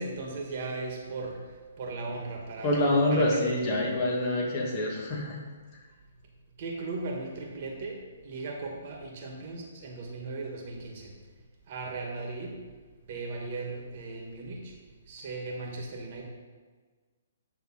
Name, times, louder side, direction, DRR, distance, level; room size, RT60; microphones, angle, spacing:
voice 1, 0.0-1.4 1.8-3.5 3.8-3.9 6.6-11.1 11.7-12.6 13.1-14.7 15.1-16.2, right 3 dB, 45° right, 0 dB, 1.8 m, -37 dB
voice 2, 2.6-5.4, left 1 dB, 35° left, -3 dB, 2.1 m, -26 dB
9.9 x 3.6 x 5.8 m, 1.4 s
hypercardioid pair, 150°, 0 cm